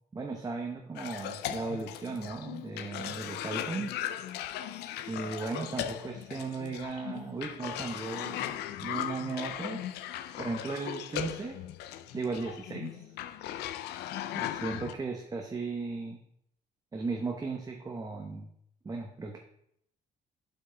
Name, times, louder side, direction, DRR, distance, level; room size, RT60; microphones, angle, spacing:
voice 1, 0.1-4.0 5.1-8.5 8.8-9.8 10.4-11.6 12.1-13.1 14.3-16.2 16.9-18.5 18.8-19.4, right 4 dB, 20° right, 1 dB, 0.9 m, -36 dB
Cough, 1.0-14.9, left 11 dB, 75° left, 0.5 m, -38 dB
7.7 x 5.7 x 3.4 m, 0.72 s
cardioid pair, 110°, 17 cm